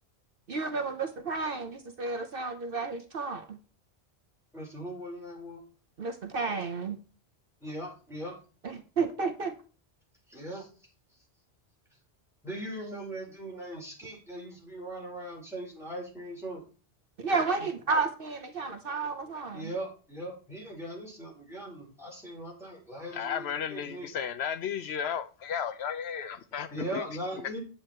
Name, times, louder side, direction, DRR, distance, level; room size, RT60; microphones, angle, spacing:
voice 1, 0.5-3.6 6.0-7.0 8.6-9.5 17.2-19.7, right 4 dB, 60° right, 1.0 m, -32 dB
voice 2, 4.5-5.6 7.6-8.4 10.3-10.9 12.4-16.6 17.6-17.7 19.5-24.1 26.7-27.6, right 1 dB, ahead, 4.7 m, -39 dB
voice 3, 23.1-27.0, left 8 dB, 75° left, 0.9 m, -34 dB
9.2 x 7.9 x 4.4 m
omnidirectional pair, 1.1 m